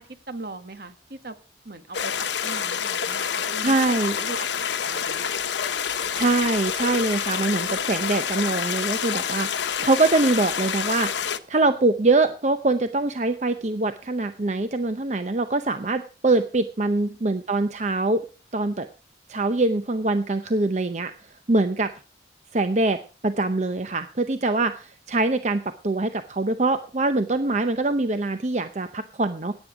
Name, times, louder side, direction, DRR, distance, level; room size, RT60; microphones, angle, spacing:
voice 1, 0.0-1.4 1.6-5.4 17.0-17.2, right 2 dB, 55° right, 9 dB, 1.5 m, -40 dB
Creek - Forest - Nature - Loop - Bach - Wald - Natur, 1.9-11.4, left 7 dB, 90° left, 0.9 m, -27 dB
voice 2, 3.6-4.2 6.1-11.1 11.5-18.2 18.5-18.9 19.3-21.1 21.5-21.9 22.5-29.5, right 2 dB, 40° right, 9 dB, 0.7 m, -23 dB
17.0 x 9.0 x 4.9 m, 0.36 s
head